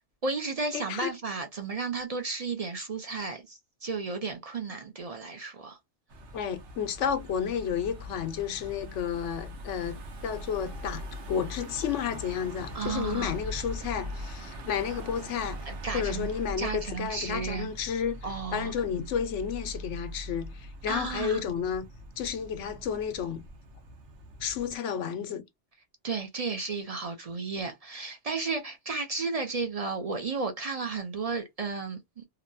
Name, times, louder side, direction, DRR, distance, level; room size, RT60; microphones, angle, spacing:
voice 1, 0.2-5.8 12.7-13.3 15.7-16.3 16.6-17.7 18.2-18.7 20.9-21.5 26.0-32.2, right 4 dB, 45° right, 0.5 m, -33 dB
voice 2, 0.7-1.1 6.3-15.7 15.9-18.2 18.5-21.8 22.2-23.4 24.4-25.4, left 8 dB, 85° left, 1.0 m, -31 dB
Car passing by / Engine, 6.1-24.8, equal, 80° right, 1.1 m, -41 dB
2.9 x 2.2 x 2.4 m
omnidirectional pair, 1.2 m